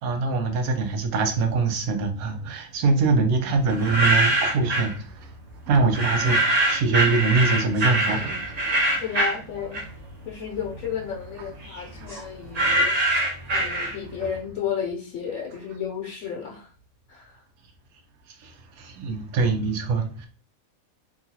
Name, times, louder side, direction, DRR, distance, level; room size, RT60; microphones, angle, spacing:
voice 1, 0.0-5.4 5.7-9.0 11.4-11.5 11.8-12.2 18.3-20.3, right 4 dB, 80° right, 1.1 m, -24 dB
sound 1, 3.7-4.9 5.9-10.2 10.5-14.3, right 1 dB, 45° right, 0.5 m, -24 dB
voice 2, 9.0-9.8 10.2-16.7 17.1-17.4, left 7 dB, 70° left, 1.0 m, -33 dB
2.9 x 2.3 x 2.7 m
omnidirectional pair, 1.5 m